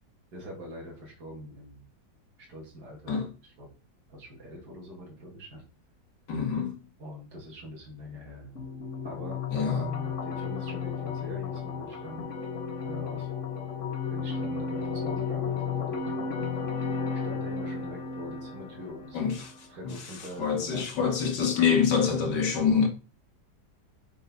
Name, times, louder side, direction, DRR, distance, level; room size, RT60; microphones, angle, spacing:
voice 1, 0.3-1.8 2.4-3.1 3.4-3.7 4.1-5.6 7.0-8.6 9.0-12.3 12.8-13.3 14.1-16.7 17.2-19.3 19.7-21.1 21.5-21.6, equal, 65° right, 2.8 m, -43 dB
voice 2, 6.3-6.8 9.5-9.9 19.1-19.5 19.8-22.9, left 6 dB, 85° left, 2.2 m, -26 dB
sound 1, 8.6-19.6, left 6 dB, 50° left, 1.5 m, -33 dB
6.6 x 4.7 x 5.4 m
omnidirectional pair, 1.8 m